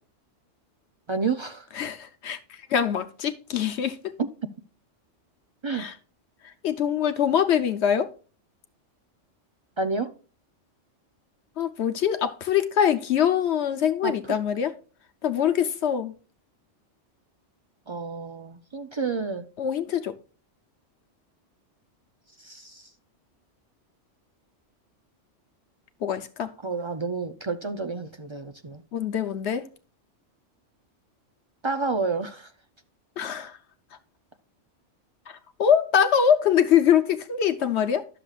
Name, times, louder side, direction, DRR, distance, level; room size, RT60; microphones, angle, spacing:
voice 1, 1.1-1.7 4.2-4.3 5.6-5.9 9.8-10.1 14.0-14.4 17.9-19.5 22.4-22.9 26.6-28.8 31.6-32.5, right 4 dB, 50° right, 0.3 m, -30 dB
voice 2, 1.8-2.4 2.7-4.1 5.7-5.9 6.6-8.1 11.6-14.7 15.2-16.1 19.6-20.2 26.0-26.5 28.9-29.7 33.2-33.6 35.6-38.1, left 8 dB, 65° left, 1.0 m, -23 dB
11.5 x 6.9 x 2.4 m
omnidirectional pair, 1.2 m